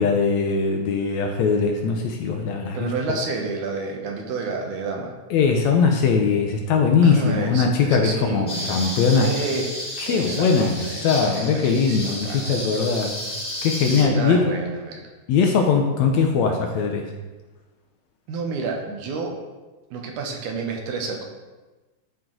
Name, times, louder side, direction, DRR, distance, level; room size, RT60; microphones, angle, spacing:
voice 1, 0.0-2.9 5.3-9.3 10.0-13.1 13.6-14.5 15.3-17.0, left 5 dB, 75° left, 3 dB, 1.8 m, -20 dB
voice 2, 2.7-5.1 7.0-9.7 10.1-12.6 13.8-15.1 18.3-19.4 19.9-21.2, right 4 dB, 75° right, 2 dB, 2.4 m, -30 dB
sound 1, 8.5-14.0, left 1 dB, 20° left, 3.0 m, -32 dB
12.0 x 4.6 x 3.8 m, 1.2 s
omnidirectional pair, 3.6 m